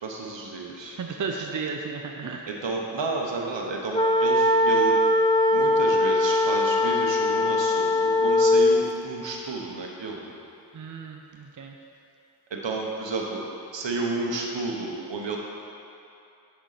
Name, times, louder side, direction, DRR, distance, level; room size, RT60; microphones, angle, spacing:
voice 1, 0.0-1.0 2.5-5.0 5.5-10.3 12.5-13.4 13.7-15.4, right 3 dB, 75° right, -1 dB, 1.1 m, -31 dB
voice 2, 1.0-2.5 10.7-11.7, right 5 dB, 45° right, 2 dB, 0.6 m, -34 dB
sound 1, 3.9-8.8, left 1 dB, 10° left, 0.4 m, -21 dB
9.2 x 4.7 x 4.1 m, 2.7 s
cardioid pair, 40°, 44 cm